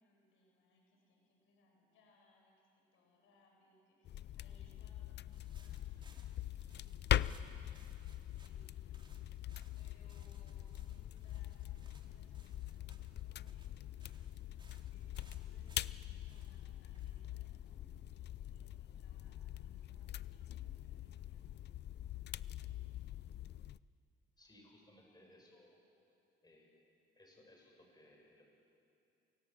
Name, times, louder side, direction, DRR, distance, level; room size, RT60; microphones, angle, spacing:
voice 1, 0.0-6.2 6.6-9.4 9.8-13.9 14.9-21.5 22.3-22.9, left 1 dB, 85° left, 0 dB, 6.4 m, -71 dB
sound 1, 4.1-23.8, left 12 dB, 60° left, 0.5 m, -43 dB
sound 2, 5.3-18.1, right 2 dB, 25° right, 3.4 m, -68 dB
voice 2, 24.4-25.8 26.4-26.9 27.2-28.4, left 1 dB, 20° left, 0 dB, 7.5 m, -63 dB
29.0 x 24.5 x 7.6 m, 2.6 s
cardioid pair, 90°, 20 cm